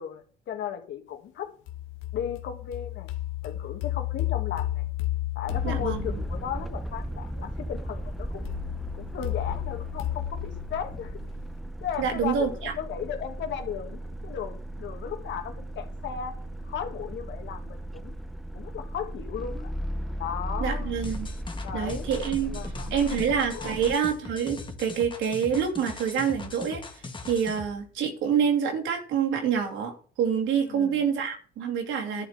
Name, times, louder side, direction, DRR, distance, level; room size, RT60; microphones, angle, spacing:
voice 1, 0.0-1.5 2.1-3.1 3.4-4.9 5.4-8.5 8.9-11.2 11.8-16.4 16.6-18.1 18.5-19.7 20.2-20.9 21.6-22.1 22.4-23.2 23.5-23.8 30.7-31.0 32.1-32.3, left 8 dB, 65° left, 6 dB, 2.4 m, -36 dB
sound 1, 1.7-6.6 8.4-11.5, left 15 dB, 80° left, 1.7 m, -33 dB
sound 2, 5.5-24.0, equal, ahead, 0.9 m, -36 dB
voice 2, 5.6-6.0 12.0-12.7 20.6-21.3 21.7-22.6 22.9-26.8 27.3-32.3, right 7 dB, 70° right, 2 dB, 2.8 m, -27 dB
sound 3, 21.0-27.8, left 3 dB, 25° left, 2.2 m, -41 dB
11.0 x 9.8 x 4.4 m, 0.43 s
supercardioid pair, 90°, 21 cm